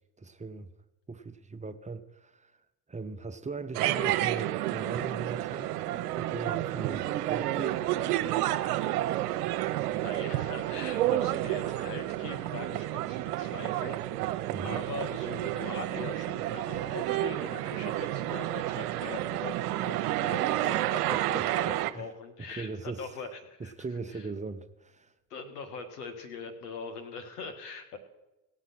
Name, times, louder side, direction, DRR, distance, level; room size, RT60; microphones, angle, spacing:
voice 1, 0.2-0.7 1.1-2.5 2.9-5.8 6.2-7.9 14.5-14.8 21.1-22.1 22.5-23.1 23.6-25.1, right 4 dB, 15° right, 0.7 m, -39 dB
sound 1, 3.7-21.9, right 14 dB, 85° right, 0.7 m, -30 dB
voice 2, 10.0-23.7 24.1-24.3 25.3-28.0, left 4 dB, 90° left, 1.7 m, -42 dB
18.0 x 6.3 x 5.8 m
hypercardioid pair, 90°, 45 cm